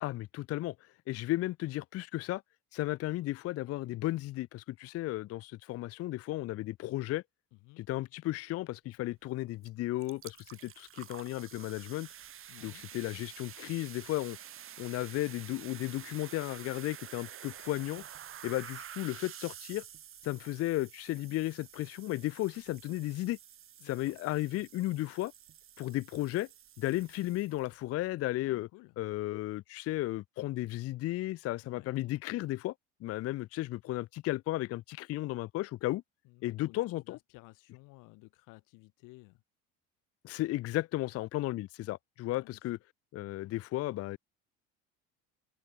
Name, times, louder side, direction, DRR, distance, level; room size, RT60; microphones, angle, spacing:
voice 1, 0.0-2.4 2.7-7.2 7.8-12.1 12.6-14.4 14.8-18.0 18.4-19.8 20.2-23.4 23.8-25.3 25.8-26.5 26.8-28.7 29.0-32.7 33.0-36.0 36.4-37.2 40.2-42.8 43.1-44.2, left 16 dB, 50° left, 0.5 m, -34 dB
voice 2, 7.5-7.8 12.5-12.8 23.8-24.2 24.5-24.7 28.4-28.9 31.6-31.9 36.2-39.4 42.3-42.6, left 24 dB, 75° left, 3.8 m, -56 dB
sound 1, 9.6-9.7 10.0-27.7, right 10 dB, 40° right, 1.4 m, -50 dB
open air
supercardioid pair, 90°, 32 cm